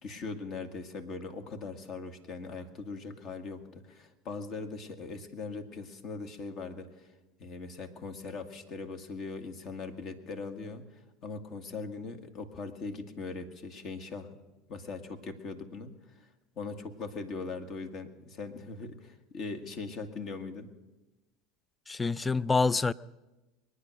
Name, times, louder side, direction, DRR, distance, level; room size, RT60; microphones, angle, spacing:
voice 1, 0.0-7.1 7.4-14.3 14.7-16.3 16.5-20.7, left 4 dB, 50° left, 1.8 m, -40 dB
voice 2, 21.9-22.9, left 4 dB, 15° left, 0.5 m, -26 dB
22.0 x 9.7 x 6.5 m
hypercardioid pair, 85°, 0 cm